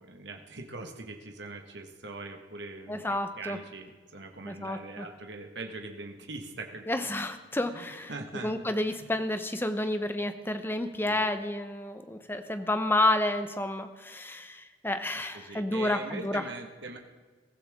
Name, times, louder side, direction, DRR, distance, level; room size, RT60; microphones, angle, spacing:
voice 1, 0.0-7.2 7.6-8.5 8.9-9.2 11.0-11.3 15.3-17.0, right 3 dB, 60° right, 4 dB, 1.6 m, -42 dB
voice 2, 2.9-3.6 4.4-5.1 6.9-8.1 8.4-16.4, left 1 dB, 10° left, 9 dB, 0.8 m, -30 dB
22.0 x 14.0 x 3.7 m, 1.4 s
head